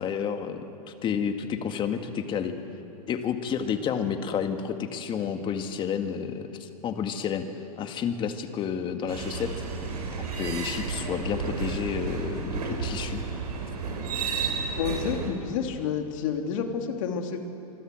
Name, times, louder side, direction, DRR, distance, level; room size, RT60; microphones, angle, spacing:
voice 1, 0.0-2.5 3.1-7.4 7.8-9.5 10.3-13.2, left 7 dB, 25° left, 7 dB, 2.0 m, -30 dB
sound 1, 9.1-15.3, right 4 dB, 85° right, 5.9 m, -32 dB
voice 2, 14.8-17.4, left 7 dB, 55° left, 4 dB, 3.1 m, -29 dB
26.5 x 24.5 x 7.8 m, 2.9 s
hypercardioid pair, 135°, 20 cm